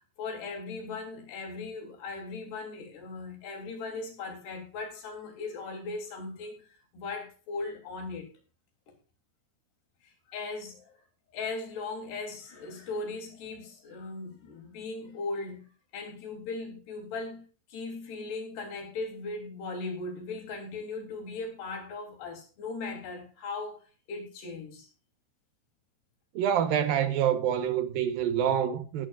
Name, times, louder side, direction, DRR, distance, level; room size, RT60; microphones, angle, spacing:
voice 1, 0.2-6.5 6.9-8.3 10.3-10.9 11.3-24.9, left 3 dB, 75° left, 5.4 m, -38 dB
voice 2, 26.4-29.1, right 9 dB, 70° right, 2.7 m, -26 dB
18.0 x 13.0 x 2.5 m
omnidirectional pair, 4.7 m